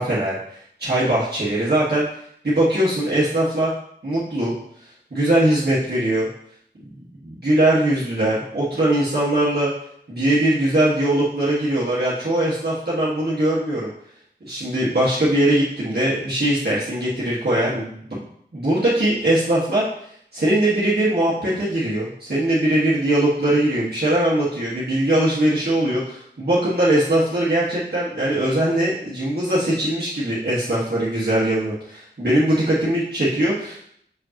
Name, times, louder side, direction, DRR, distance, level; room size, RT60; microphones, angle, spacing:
voice 1, 0.0-2.0 2.4-3.7 4.0-4.5 5.1-6.3 7.0-9.7 10.1-13.9 14.4-18.2 18.5-19.8 20.3-33.8, right 1 dB, 60° right, -9 dB, 1.7 m, -21 dB
6.5 x 5.1 x 2.9 m, 0.69 s
wide cardioid pair, 50°, 18 cm